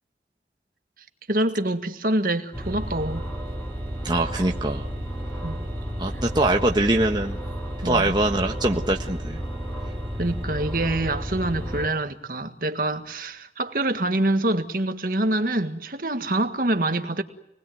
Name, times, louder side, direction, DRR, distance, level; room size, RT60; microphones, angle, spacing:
voice 1, 1.3-3.3 5.4-5.6 7.8-8.2 10.2-17.2, right 1 dB, 50° right, 1.8 m, -25 dB
sound 1, 2.5-11.9, equal, 15° left, 5.7 m, -32 dB
voice 2, 4.0-4.9 6.0-7.4 7.8-9.4, right 2 dB, 25° right, 1.4 m, -23 dB
28.0 x 20.5 x 9.3 m
head